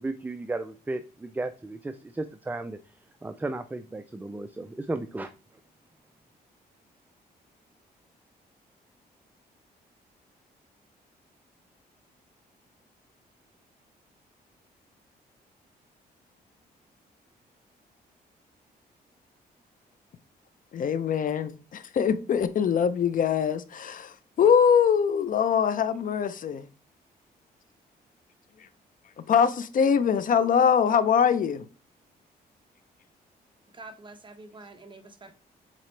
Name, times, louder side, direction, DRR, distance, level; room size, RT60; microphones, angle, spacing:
voice 1, 0.0-3.0 3.2-5.3, right 2 dB, 10° right, 0.4 m, -34 dB
voice 2, 20.7-26.7 29.3-31.7, left 7 dB, 55° left, 0.6 m, -23 dB
voice 3, 33.7-35.4, right 2 dB, 30° right, 1.0 m, -46 dB
7.5 x 4.2 x 3.2 m
cardioid pair, 105°, 17 cm